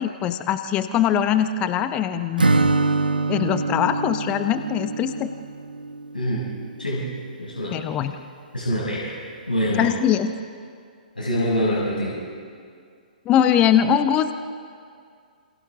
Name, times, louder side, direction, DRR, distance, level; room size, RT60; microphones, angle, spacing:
voice 1, 0.0-2.4 3.3-5.3 7.7-8.2 9.8-10.3 13.3-14.4, left 9 dB, 20° left, 10 dB, 0.8 m, -21 dB
Acoustic guitar / Strum, 2.4-6.3, right 3 dB, 75° right, 0.9 m, -24 dB
voice 2, 6.1-6.5 6.8-7.1 7.4-7.8 8.5-9.2 9.5-9.9 11.1-12.2, equal, 80° left, -6 dB, 6.1 m, -25 dB
28.5 x 27.5 x 3.7 m, 2.2 s
figure-of-eight pair, 120°, 5 cm